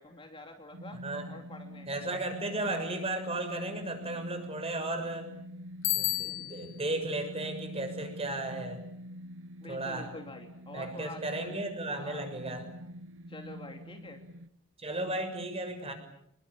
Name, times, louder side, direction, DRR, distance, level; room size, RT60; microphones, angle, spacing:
voice 1, 0.0-1.0 1.3-1.9 9.6-11.5 11.9-12.3 13.3-14.2, left 2 dB, 25° left, 4 dB, 2.9 m, -47 dB
sound 1, 0.7-14.5, equal, 60° right, 1.1 m, -46 dB
voice 2, 1.9-5.3 5.9-8.8 9.7-10.1 10.7-12.7 14.8-15.9, right 2 dB, 25° right, 6 dB, 6.6 m, -35 dB
Bicycle bell, 5.8-6.8, left 17 dB, 65° left, 2.7 m, -31 dB
28.5 x 22.0 x 8.8 m, 0.74 s
head